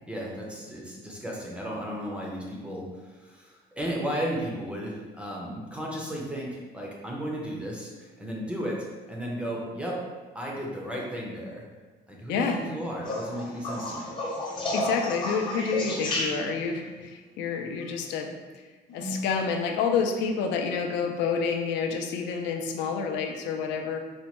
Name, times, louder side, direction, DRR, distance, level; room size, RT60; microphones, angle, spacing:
voice 1, 0.1-10.0 10.3-11.6 12.1-14.1, equal, 5° right, -3 dB, 0.4 m, -34 dB
sound 1, 13.0-16.7 18.9-19.4 21.0-21.1, left 1 dB, 25° left, 0.7 m, -31 dB
voice 2, 14.7-18.3 18.9-24.0, left 5 dB, 85° left, 4 dB, 0.4 m, -28 dB
4.2 x 2.1 x 2.9 m, 1.3 s
cardioid pair, 180°, 18 cm